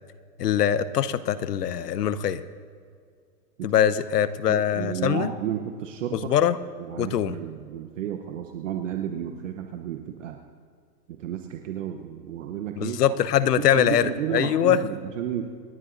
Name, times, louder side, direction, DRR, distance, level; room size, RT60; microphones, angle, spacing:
voice 1, 0.4-2.4 3.6-5.3 6.1-6.6 7.0-7.4 12.8-14.8, left 9 dB, 80° left, 15 dB, 0.9 m, -23 dB
voice 2, 4.5-6.3 6.9-10.4 11.1-13.0 13.6-15.5, right 9 dB, 50° right, 5 dB, 0.9 m, -32 dB
28.0 x 11.0 x 2.6 m, 2.1 s
hypercardioid pair, 155°, 47 cm